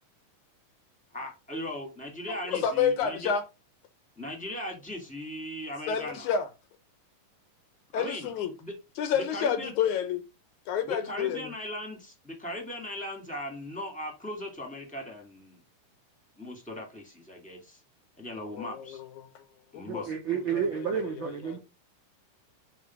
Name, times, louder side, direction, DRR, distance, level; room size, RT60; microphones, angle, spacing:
voice 1, 1.1-3.3 4.2-6.3 7.9-8.3 8.6-8.7 9.3-9.7 10.8-15.6 16.4-17.8 18.2-19.0 19.7-20.1, left 1 dB, 5° left, 1.9 m, -38 dB
voice 2, 2.3-3.4 5.9-6.5 7.9-8.6 9.0-10.2 10.7-11.5 18.4-19.4 19.7-20.7 21.5-21.6, left 7 dB, 70° left, 2.1 m, -30 dB
voice 3, 19.9-21.6, right 7 dB, 90° right, 1.0 m, -30 dB
6.1 x 3.8 x 5.9 m
omnidirectional pair, 3.8 m